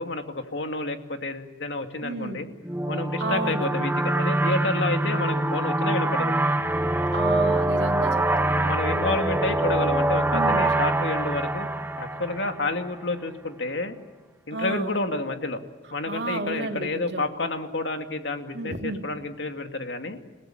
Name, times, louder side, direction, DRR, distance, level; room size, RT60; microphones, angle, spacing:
voice 1, 0.0-2.5 2.9-6.3 8.6-11.7 12.0-13.9 14.5-15.6 15.9-20.2, left 2 dB, 75° left, 5 dB, 2.4 m, -29 dB
voice 2, 2.0-2.4 3.2-3.7 7.1-8.7 10.3-10.7 14.5-14.9 16.1-17.3 18.5-19.0, right 2 dB, 65° right, 4 dB, 2.5 m, -32 dB
sound 1, 2.7-13.0, right 1 dB, 10° right, 0.9 m, -24 dB
29.5 x 17.5 x 8.7 m, 1.3 s
head